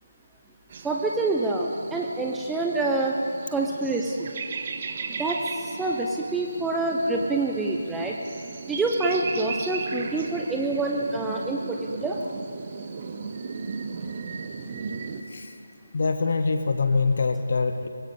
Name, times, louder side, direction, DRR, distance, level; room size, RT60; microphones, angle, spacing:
sound 1, 0.7-15.2, right 5 dB, 30° right, 1.2 m, -36 dB
voice 1, 0.8-3.1 3.5-4.3 5.1-8.2 8.7-12.2, right 2 dB, 5° right, -1 dB, 0.9 m, -26 dB
voice 2, 15.9-17.9, left 4 dB, 45° left, 7 dB, 1.3 m, -24 dB
24.5 x 21.5 x 5.5 m, 2.6 s
figure-of-eight pair, 155°, 0 cm